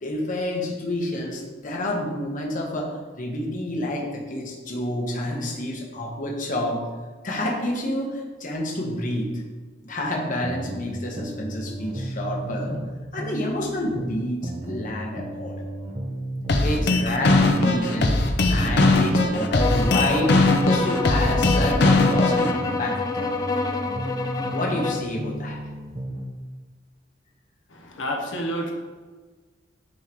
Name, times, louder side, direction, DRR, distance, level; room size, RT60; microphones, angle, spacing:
voice 1, 0.0-2.9 3.2-6.8 7.2-9.3 9.8-12.8 13.1-15.6 16.6-23.0 24.5-25.6, left 1 dB, 45° left, -1 dB, 0.9 m, -29 dB
sound 1, 10.4-12.9 13.2-16.9 17.2-20.9 21.2-24.9 25.2-26.2, right 1 dB, 35° right, 0.7 m, -33 dB
sound 2, 16.5-22.5, left 2 dB, 60° left, 0.6 m, -20 dB
sound 3, 19.6-25.1, left 3 dB, 20° left, 0.4 m, -27 dB
voice 2, 28.0-28.7, equal, 90° left, 0 dB, 0.8 m, -28 dB
9.3 x 3.6 x 3.0 m, 1.4 s
head